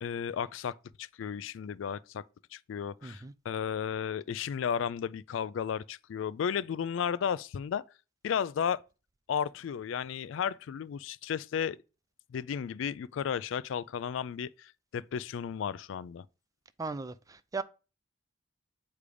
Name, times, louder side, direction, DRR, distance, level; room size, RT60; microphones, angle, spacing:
voice 1, 0.0-2.2 2.5-7.8 8.2-8.8 9.3-11.8 12.3-16.2, left 7 dB, 70° left, 0.3 m, -34 dB
voice 2, 3.0-3.3 16.8-17.6, right 4 dB, 20° right, 0.4 m, -37 dB
8.4 x 3.3 x 5.0 m
head